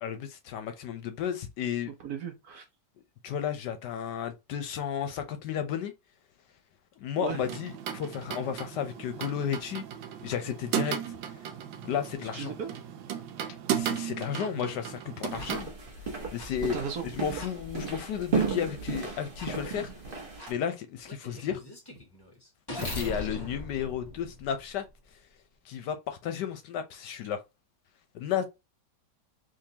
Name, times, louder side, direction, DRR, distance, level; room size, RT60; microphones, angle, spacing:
voice 1, 0.0-1.9 3.2-5.9 7.0-9.8 10.2-11.1 11.8-12.5 13.7-15.7 16.3-16.8 17.1-19.9 20.5-21.6 22.7-24.8 25.7-27.4 28.1-28.5, left 8 dB, 70° left, 1.1 m, -33 dB
voice 2, 2.0-2.6 7.2-7.4 12.3-12.7 15.3-15.6 16.7-17.2, right 7 dB, 60° right, 1.1 m, -36 dB
sound 1, 7.3-15.6, right 9 dB, 85° right, 1.4 m, -36 dB
sound 2, 14.4-14.5 15.4-15.5 16.4-16.5 17.4-17.5 18.4-18.5 19.4-19.5 20.4-20.5 21.1-25.0, left 1 dB, 20° left, 0.7 m, -40 dB
sound 3, 15.3-20.5, right 5 dB, 35° right, 0.9 m, -34 dB
3.7 x 3.1 x 2.8 m
omnidirectional pair, 2.1 m